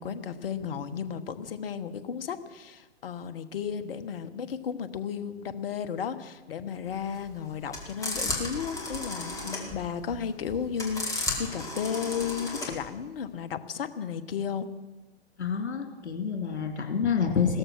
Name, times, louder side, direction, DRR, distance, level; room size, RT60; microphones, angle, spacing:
voice 1, 0.0-14.7, left 7 dB, 55° left, 10 dB, 1.2 m, -34 dB
sound 1, 6.9-12.9, left 2 dB, 10° left, 2.3 m, -34 dB
voice 2, 15.4-17.6, left 6 dB, 75° left, 3 dB, 2.8 m, -28 dB
17.0 x 13.0 x 6.2 m, 1.2 s
figure-of-eight pair, 125°, 34 cm